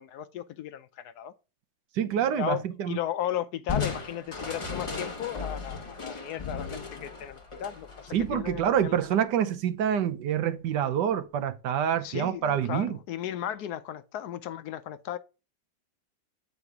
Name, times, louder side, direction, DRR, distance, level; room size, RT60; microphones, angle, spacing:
voice 1, 0.0-1.3 2.4-9.0 12.0-15.2, left 11 dB, 70° left, 1.0 m, -35 dB
voice 2, 2.0-3.0 8.1-13.0, right 9 dB, 75° right, 1.4 m, -27 dB
Crushing, 3.7-9.1, left 5 dB, 20° left, 0.9 m, -36 dB
8.3 x 4.8 x 3.5 m
omnidirectional pair, 1.9 m